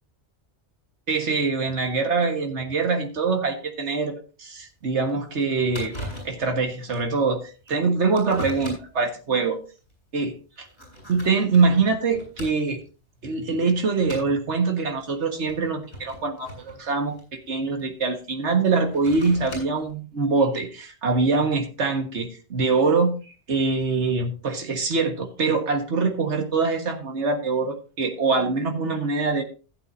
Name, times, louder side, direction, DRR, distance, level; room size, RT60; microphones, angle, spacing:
voice 1, 1.1-5.9 6.2-9.6 10.1-10.3 11.1-12.8 13.2-29.4, right 4 dB, 80° right, 4 dB, 1.8 m, -24 dB
sound 1, 4.6-4.7 5.1-5.2 5.4-5.5 5.7-6.4 6.9-7.1 7.7-7.8 8.2-9.0 9.8-9.9 10.6-12.9 13.3-13.6 14.0-14.4 15.3-17.8 18.7-19.9, equal, 65° left, 5.6 m, -39 dB
16.0 x 8.6 x 2.6 m, 0.35 s
omnidirectional pair, 1.2 m